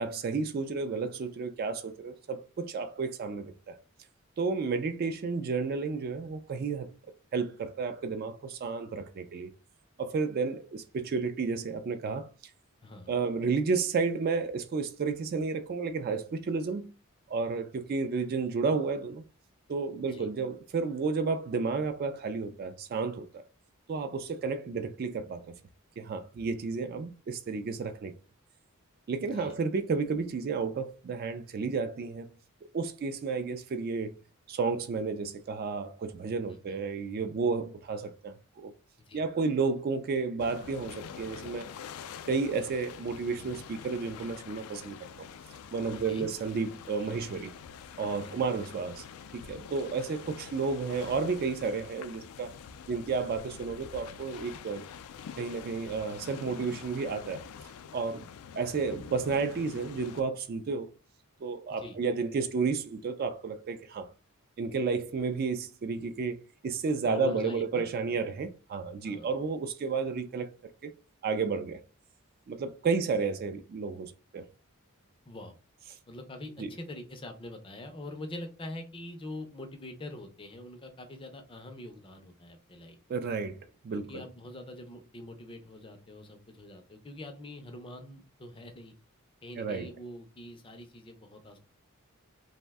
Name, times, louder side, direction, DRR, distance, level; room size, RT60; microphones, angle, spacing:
voice 1, 0.0-3.8 4.4-6.9 7.3-9.5 10.0-12.3 13.1-16.9 17.3-19.2 19.7-23.4 23.9-25.5 26.0-28.1 29.1-32.3 32.7-34.2 34.5-38.7 39.1-41.7 42.3-45.3 45.7-47.5 48.0-49.0 49.3-52.5 52.9-54.8 55.4-57.4 57.9-58.2 58.5-60.9 61.4-64.1 64.6-70.5 70.8-71.0 71.2-71.8 72.5-74.5 76.6-76.7 83.1-84.2 89.6-89.9, right 4 dB, 45° right, 0.3 m, -32 dB
voice 2, 12.8-13.1 20.0-20.3 29.2-29.6 36.5-36.8 39.0-39.2 45.9-46.3 48.2-48.4 61.7-62.0 67.0-67.8 69.0-69.3 72.8-72.9 75.3-75.6 76.1-83.0 83.9-88.9 89.4-91.6, left 1 dB, 25° left, 0.4 m, -44 dB
sound 1, 40.4-60.2, left 7 dB, 90° left, 0.3 m, -46 dB
2.5 x 2.1 x 3.4 m
head